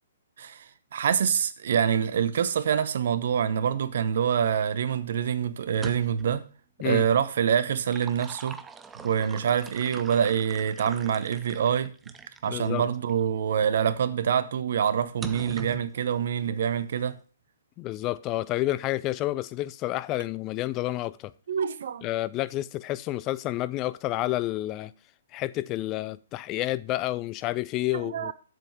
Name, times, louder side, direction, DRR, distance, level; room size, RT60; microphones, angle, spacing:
voice 1, 0.9-6.4 6.8-8.6 9.0-11.9 12.4-17.2 21.5-22.1 27.9-28.3, right 8 dB, 55° right, 0.9 m, -26 dB
sound 1, 5.7-6.4 7.6-12.5 13.1-13.2 15.2-15.9, right 5 dB, 10° right, 0.7 m, -43 dB
voice 2, 12.5-12.8 17.8-21.3 22.0-24.9 25.3-28.3, left 16 dB, 30° left, 0.5 m, -29 dB
7.8 x 7.8 x 4.7 m
figure-of-eight pair, 125°, 0 cm